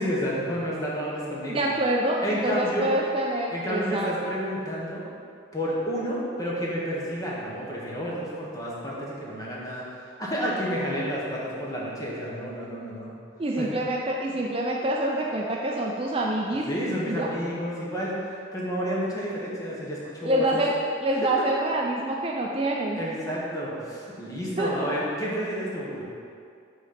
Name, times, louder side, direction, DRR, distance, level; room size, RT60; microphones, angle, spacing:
voice 1, 0.0-1.6 2.2-2.9 3.5-5.0 5.5-13.1 13.6-13.7 16.7-20.6 23.0-26.0, equal, 20° left, -5 dB, 1.1 m, -30 dB
voice 2, 1.5-4.1 13.4-16.7 17.1-17.3 20.2-20.7 21.0-23.0 24.6-24.7, right 1 dB, 30° right, -1 dB, 0.4 m, -26 dB
6.1 x 4.0 x 5.7 m, 2.4 s
head